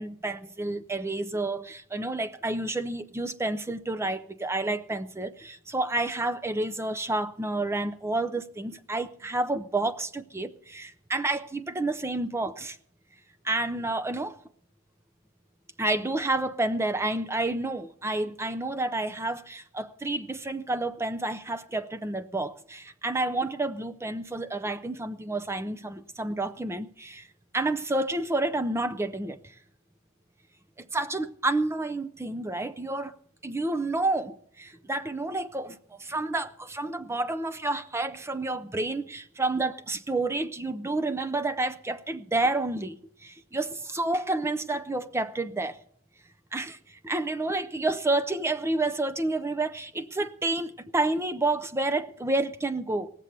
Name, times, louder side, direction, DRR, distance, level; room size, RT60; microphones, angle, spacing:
voice 1, 0.0-12.8 13.4-14.4 15.8-27.3 27.5-29.5 30.8-33.1 33.4-45.8 46.5-53.1, right 2 dB, 10° right, 0.4 m, -30 dB
19.0 x 7.4 x 6.7 m
head